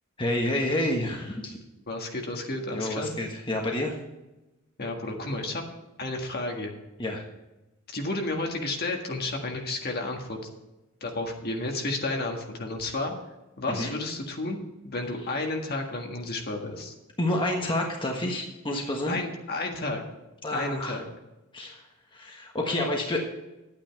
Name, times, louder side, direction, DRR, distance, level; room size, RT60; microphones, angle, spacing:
voice 1, 0.2-1.6 2.7-4.0 7.0-7.2 13.7-13.9 17.2-19.2 20.4-21.0 21.5-21.9 22.1-23.2, left 1 dB, 25° left, 0 dB, 1.4 m, -29 dB
voice 2, 1.9-3.1 4.8-5.6 6.0-6.7 7.9-10.4 11.0-13.1 13.6-16.9 19.1-20.0 20.5-21.0, left 2 dB, 50° left, 2 dB, 1.7 m, -31 dB
11.5 x 9.1 x 4.6 m, 1.0 s
head